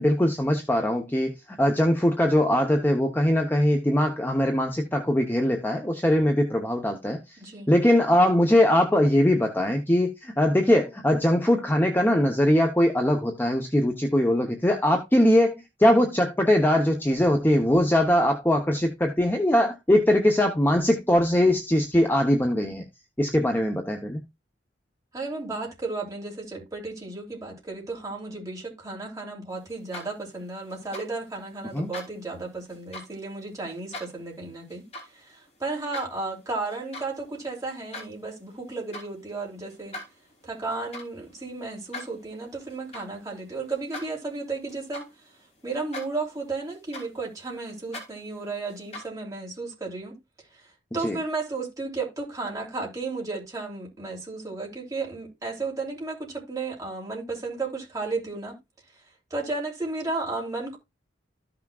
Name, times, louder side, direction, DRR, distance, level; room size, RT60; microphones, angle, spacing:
voice 1, 0.0-1.3 1.6-7.2 7.7-22.8 23.2-24.2 31.7-31.9 51.0-51.2, left 1 dB, 10° left, 0.9 m, -21 dB
voice 2, 7.4-7.7 25.1-34.9 35.1-40.0 40.4-45.1 45.6-50.2 50.5-50.6 50.9-58.6 59.3-60.8, right 3 dB, 20° right, 3.2 m, -33 dB
sound 1, 29.7-30.3 30.7-31.1 31.7-32.1 32.7-33.1 33.7-34.1 34.7-35.1 35.5-36.1 36.6-37.1 37.4-38.1 38.7-39.1 39.7-45.4 45.7-46.3 46.7-49.0, left 2 dB, 35° left, 3.2 m, -42 dB
14.0 x 6.0 x 2.4 m
head